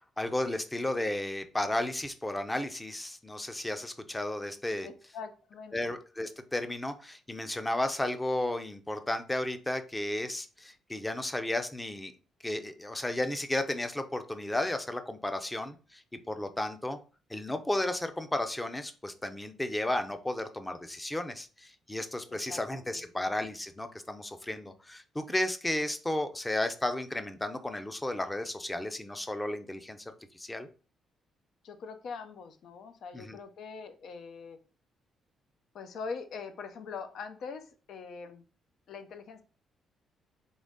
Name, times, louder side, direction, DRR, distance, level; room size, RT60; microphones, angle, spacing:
voice 1, 0.2-4.9 5.7-12.1 12.4-17.0 17.3-30.0 30.3-30.7 33.1-33.4, left 1 dB, 15° left, 8 dB, 0.6 m, -33 dB
voice 2, 4.8-5.9 22.3-23.0 31.6-34.6 35.7-38.4 38.9-39.4, left 5 dB, 70° left, 8 dB, 0.7 m, -43 dB
3.9 x 3.1 x 3.6 m, 0.36 s
cardioid pair, 90°, 0 cm